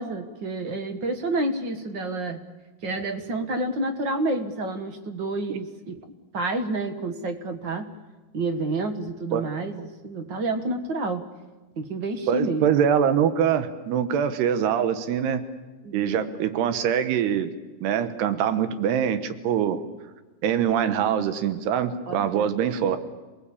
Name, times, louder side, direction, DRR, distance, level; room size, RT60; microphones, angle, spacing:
voice 1, 0.0-2.5 2.8-6.0 6.3-7.9 8.3-11.2 11.8-12.8 15.8-16.2 22.1-22.5, right 2 dB, 60° right, 8 dB, 1.2 m, -29 dB
voice 2, 12.3-15.4 15.9-17.5 17.8-19.8 20.4-23.0, right 8 dB, 85° right, 11 dB, 3.4 m, -24 dB
28.0 x 19.0 x 8.6 m, 1.2 s
omnidirectional pair, 4.6 m